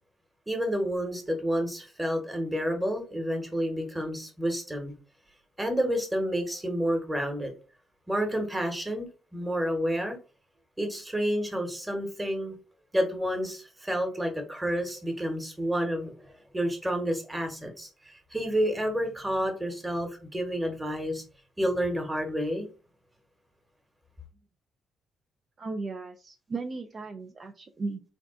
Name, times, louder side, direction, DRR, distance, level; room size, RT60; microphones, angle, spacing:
voice 1, 0.5-4.9 5.6-7.5 8.1-10.2 10.8-12.5 12.9-21.2 21.6-22.7, equal, 10° right, 1.1 m, -30 dB
voice 2, 25.6-28.0, right 3 dB, 40° right, 0.4 m, -36 dB
3.5 x 2.3 x 3.6 m
cardioid pair, 90°, 0 cm